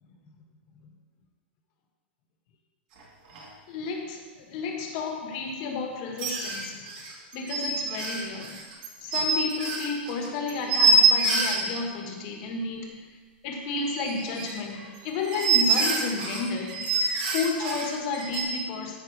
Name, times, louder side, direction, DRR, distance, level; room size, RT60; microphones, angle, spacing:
sound 1, 3.0-3.1 3.3-3.5 6.2-11.6 13.9-18.4, right 3 dB, 45° right, 1.9 m, -26 dB
voice 1, 3.7-6.8 7.3-8.6 9.0-13.0 13.4-16.9 17.3-19.0, left 4 dB, 40° left, 2 dB, 1.4 m, -32 dB
13.5 x 5.7 x 3.4 m, 1.4 s
supercardioid pair, 165°, 6 cm